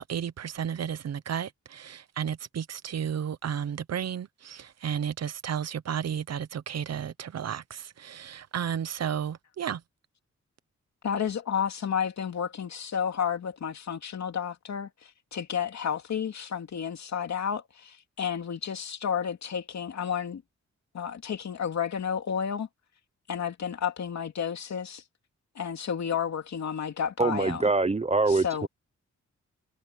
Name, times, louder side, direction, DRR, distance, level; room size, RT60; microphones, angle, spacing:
voice 1, 0.0-9.8, right 8 dB, 60° right, 0.8 m, -33 dB
voice 2, 11.0-20.4 20.9-22.7 23.3-25.0 25.5-27.7 28.3-28.7, left 8 dB, 65° left, 2.8 m, -31 dB
voice 3, 27.2-28.7, right 3 dB, 20° right, 0.9 m, -24 dB
wide cardioid pair, 130°, 30 cm